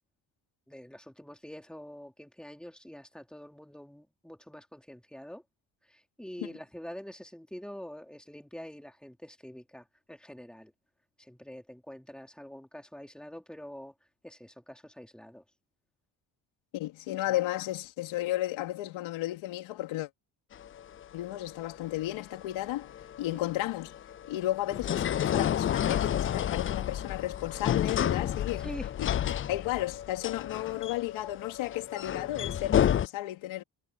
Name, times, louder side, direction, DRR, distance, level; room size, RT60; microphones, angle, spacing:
voice 1, 0.7-5.4 5.9-10.7 11.2-13.9 14.2-15.4 17.3-17.4 23.3-23.5 28.6-28.9, equal, ahead, 3.8 m, -46 dB
voice 2, 16.7-20.1 21.1-22.9 23.2-24.0 24.3-28.7 29.0-33.6, left 16 dB, 90° left, 2.8 m, -33 dB
sound 1, 20.5-33.1, left 10 dB, 30° left, 0.4 m, -31 dB
cardioid pair, 85°, 46 cm